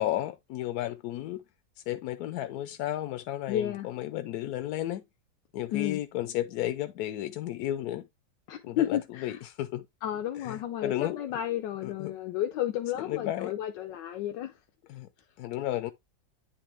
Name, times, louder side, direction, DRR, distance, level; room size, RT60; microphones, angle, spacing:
voice 1, 0.0-1.4 1.9-5.0 5.5-8.0 8.6-9.9 10.4-11.2 11.8-12.1 13.1-13.5 14.9-15.1 15.4-15.9, left 13 dB, 70° left, 1.0 m, -33 dB
voice 2, 3.5-3.9 5.7-6.0 8.5-9.4 10.0-14.6, left 11 dB, 90° left, 1.4 m, -32 dB
10.0 x 3.4 x 3.3 m
omnidirectional pair, 1.9 m